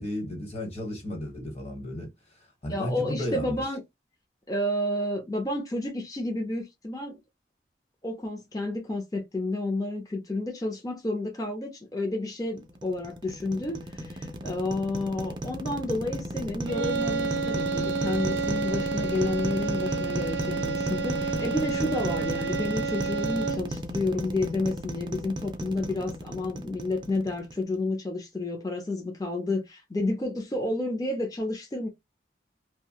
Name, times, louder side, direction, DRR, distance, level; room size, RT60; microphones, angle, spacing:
voice 1, 0.0-2.1 2.6-3.6, left 1 dB, 35° left, 1.3 m, -33 dB
voice 2, 2.7-3.8 4.5-7.2 8.0-31.9, left 2 dB, 20° left, 0.6 m, -30 dB
sound 1, 12.6-27.8, equal, 25° right, 0.4 m, -34 dB
sound 2, 16.7-23.8, right 5 dB, 70° right, 0.7 m, -30 dB
2.6 x 2.2 x 2.8 m
head